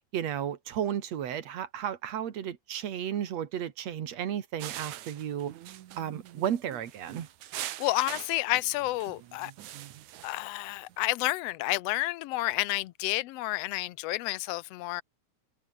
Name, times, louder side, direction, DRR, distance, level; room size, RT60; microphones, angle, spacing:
voice 1, 0.1-5.5 6.0-7.3, right 9 dB, 65° right, 2.8 m, -33 dB
sound 1, 4.6-11.0, right 13 dB, 80° right, 2.6 m, -43 dB
voice 2, 7.8-9.5 10.2-15.0, left 18 dB, 70° left, 1.6 m, -30 dB
omnidirectional pair, 3.3 m